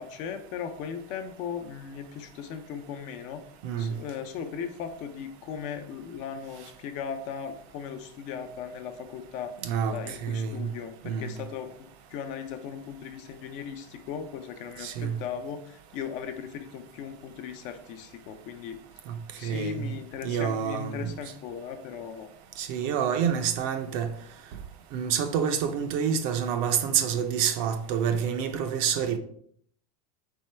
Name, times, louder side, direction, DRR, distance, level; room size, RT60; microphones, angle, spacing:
voice 1, 0.0-3.4 3.8-9.5 9.9-18.8 19.4-22.3, left 7 dB, 40° left, 0.5 m, -38 dB
voice 2, 3.6-3.9 9.6-10.7 11.0-11.3 14.8-15.2 19.1-19.2 19.4-19.9 20.2-21.1 22.6-24.1 24.9-29.2, right 8 dB, 45° right, 0.5 m, -28 dB
4.4 x 3.6 x 3.2 m
supercardioid pair, 155°, 19 cm